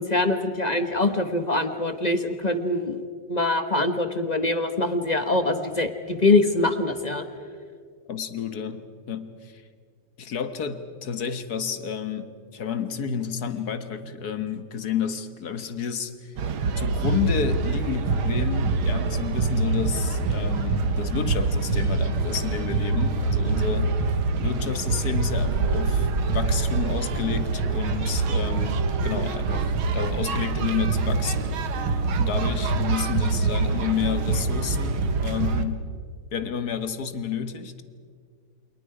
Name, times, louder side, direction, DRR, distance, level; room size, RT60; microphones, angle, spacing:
voice 1, 0.0-3.0 3.3-7.2, left 2 dB, 25° left, 8 dB, 1.0 m, -23 dB
voice 2, 8.1-9.6 10.2-16.3 16.8-35.9 36.3-37.7, left 7 dB, 55° left, 9 dB, 1.7 m, -30 dB
sound 1, 16.4-35.6, right 3 dB, 90° right, 2.1 m, -25 dB
29.5 x 27.0 x 5.0 m, 2.1 s
omnidirectional pair, 2.2 m